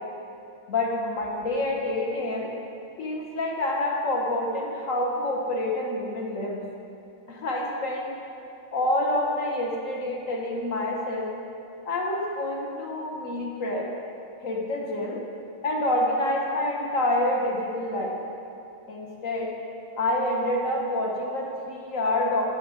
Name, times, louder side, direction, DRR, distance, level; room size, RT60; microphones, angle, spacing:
voice 1, 0.7-2.5 3.0-6.6 7.3-8.1 8.7-11.3 11.9-13.9 14.4-15.2 15.6-18.2 18.9-19.5 20.0-22.4, left 1 dB, 50° left, -2 dB, 1.2 m, -27 dB
9.1 x 6.4 x 4.9 m, 2.6 s
omnidirectional pair, 2.3 m